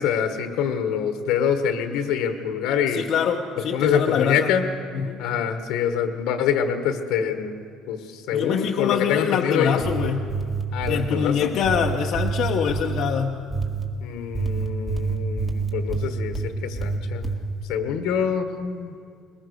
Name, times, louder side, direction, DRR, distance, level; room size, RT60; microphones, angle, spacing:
voice 1, 0.0-3.0 3.7-4.6 5.2-7.6 7.9-9.8 10.7-11.5 14.0-17.3 17.7-18.9, left 8 dB, 75° left, 7 dB, 1.4 m, -25 dB
voice 2, 2.9-4.5 4.9-5.2 8.3-10.3 10.8-13.4, left 7 dB, 50° left, 0 dB, 1.0 m, -24 dB
sound 1, 9.7-11.1 11.6-13.0 13.5-13.9 14.3-16.5 16.8-17.4, right 4 dB, 15° right, 1.9 m, -27 dB
21.5 x 20.0 x 6.5 m, 2.3 s
cardioid pair, 145°, 0 cm